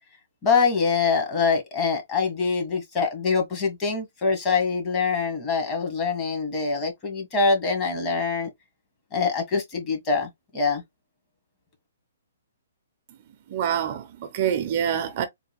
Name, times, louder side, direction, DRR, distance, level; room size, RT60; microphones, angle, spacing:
voice 1, 0.4-8.5 9.1-10.8, left 5 dB, 25° left, 1.5 m, -24 dB
voice 2, 13.5-15.3, right 9 dB, 40° right, 0.7 m, -26 dB
3.9 x 2.2 x 3.5 m
hypercardioid pair, 145°, 0 cm